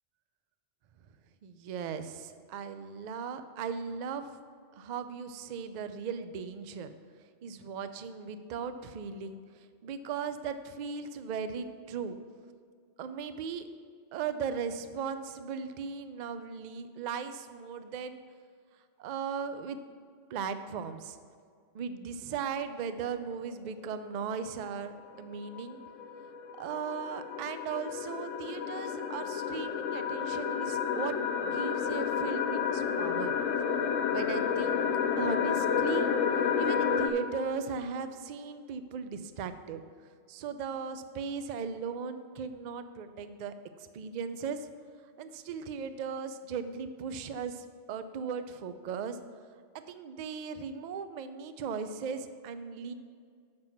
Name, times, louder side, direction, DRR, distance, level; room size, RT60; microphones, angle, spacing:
voice 1, 1.4-4.3 4.8-6.9 7.4-12.2 13.0-13.7 14.1-18.2 19.0-19.8 20.3-21.2 21.7-25.8 26.6-33.4 34.1-34.9 35.2-36.1 36.3-39.8 40.3-43.5 43.9-44.7 45.2-49.2 49.9-52.9, right 6 dB, 65° right, 10 dB, 0.4 m, -37 dB
sound 1, 23.7-23.8 25.2-37.1, left 7 dB, 75° left, 1.0 m, -30 dB
7.5 x 6.0 x 5.8 m, 2.1 s
omnidirectional pair, 1.3 m